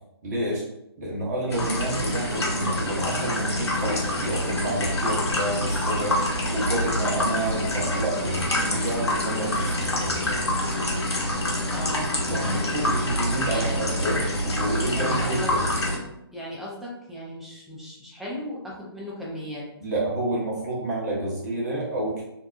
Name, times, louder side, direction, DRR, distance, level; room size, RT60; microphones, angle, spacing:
voice 1, 0.2-0.6 1.0-6.2 6.5-10.4 12.3-15.6 19.8-22.2, right 1 dB, 40° right, -5 dB, 1.0 m, -29 dB
sound 1, 1.5-16.0, left 1 dB, 80° left, 0.8 m, -26 dB
voice 2, 11.7-12.9 13.5-13.8 14.9-15.5 16.3-19.7, equal, ahead, -5 dB, 0.4 m, -36 dB
2.8 x 2.1 x 2.4 m, 0.84 s
figure-of-eight pair, 135°, 14 cm